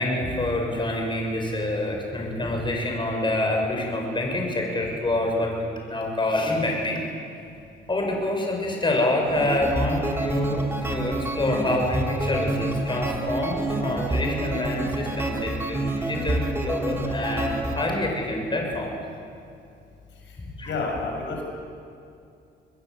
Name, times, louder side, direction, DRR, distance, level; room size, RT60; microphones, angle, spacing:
voice 1, 0.0-7.0 7.9-18.9 20.4-20.7, left 1 dB, 25° left, 1 dB, 6.7 m, -27 dB
sound 1, 9.2-17.9, right 2 dB, 10° right, 4.3 m, -28 dB
voice 2, 20.6-21.4, left 3 dB, 70° left, 0 dB, 7.4 m, -29 dB
26.5 x 21.0 x 8.2 m, 2.5 s
cardioid pair, 90°, 20 cm